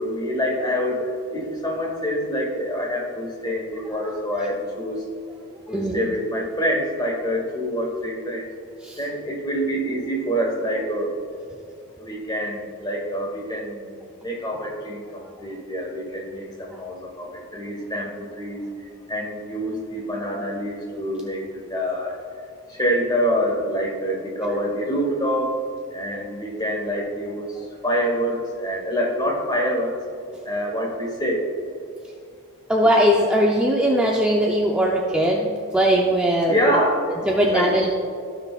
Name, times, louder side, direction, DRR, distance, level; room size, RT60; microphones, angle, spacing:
voice 1, 0.0-5.0 5.7-8.5 9.0-11.1 12.0-18.6 19.1-21.4 21.7-22.2 22.7-25.5 25.9-30.0 30.4-31.5 36.5-37.1 37.5-37.8, equal, 20° left, -1 dB, 1.4 m, -26 dB
voice 2, 3.9-4.5 5.7-6.0 8.8-9.0 16.7-16.8 32.7-36.6 37.3-37.9, equal, 5° right, -2 dB, 0.5 m, -20 dB
16.0 x 6.0 x 2.4 m, 2.5 s
head